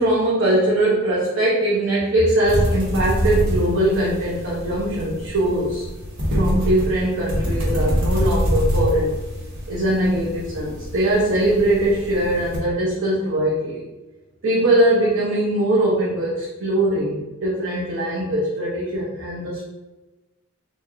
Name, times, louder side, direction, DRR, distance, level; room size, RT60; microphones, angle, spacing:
voice 1, 0.0-5.8 6.3-9.1 9.7-13.8 14.4-19.7, right 1 dB, 60° right, -6 dB, 0.7 m, -21 dB
sound 1, 2.4-12.6, equal, 90° right, 1.4 m, -25 dB
4.5 x 2.4 x 2.5 m, 1.1 s
head